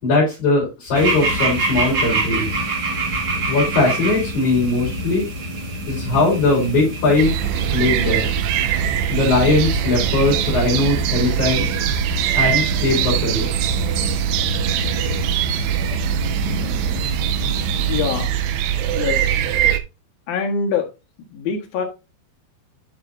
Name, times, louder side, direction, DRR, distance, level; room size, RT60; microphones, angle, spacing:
voice 1, 0.0-2.6 3.5-5.3 5.9-7.4 7.7-8.3 9.0-11.8 12.3-13.7, left 2 dB, 45° left, 4.7 m, -20 dB
sound 1, 0.9-18.2, right 1 dB, 50° right, 2.0 m, -27 dB
sound 2, 7.2-19.8, right 10 dB, 80° right, 2.8 m, -22 dB
voice 2, 17.9-18.3 19.0-19.3 20.3-20.9 21.3-21.9, left 6 dB, 65° left, 3.0 m, -23 dB
11.0 x 5.5 x 2.6 m
omnidirectional pair, 5.0 m